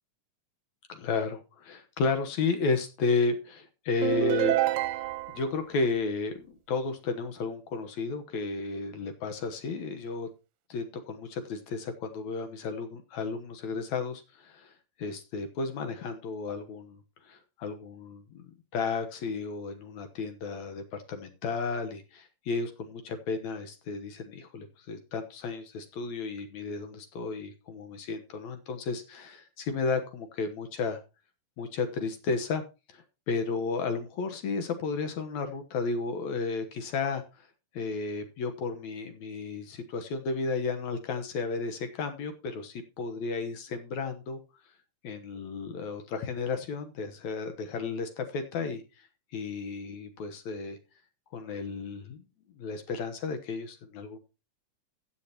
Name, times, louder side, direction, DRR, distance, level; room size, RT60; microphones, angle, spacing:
voice 1, 0.9-4.6 5.3-10.3 10.7-14.7 15.0-31.0 31.6-32.6 32.9-37.5 37.7-44.4 45.0-49.1 49.3-50.8 51.3-52.2 52.6-54.2, left 4 dB, 65° left, 7 dB, 2.4 m, -33 dB
sound 1, 4.0-5.5, right 15 dB, 80° right, 2.0 m, -27 dB
15.0 x 8.8 x 3.0 m, 0.29 s
omnidirectional pair, 3.8 m